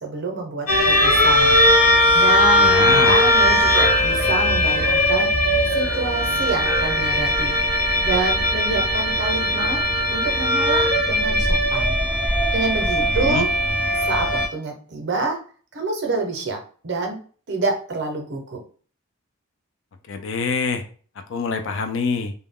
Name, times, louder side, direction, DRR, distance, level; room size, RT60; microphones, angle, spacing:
voice 1, 0.0-5.3 5.7-7.6 8.0-9.8 10.1-12.0 12.5-13.5 14.1-15.4 15.7-16.6 16.8-17.2 17.5-18.6, right 3 dB, 50° right, 3 dB, 0.6 m, -27 dB
sound 1, 0.7-14.5, left 1 dB, 75° left, 0.7 m, -19 dB
voice 2, 2.5-3.2 13.0-13.4 20.1-20.9 21.2-22.3, left 4 dB, 55° left, 7 dB, 0.4 m, -25 dB
2.2 x 2.0 x 3.5 m, 0.42 s
head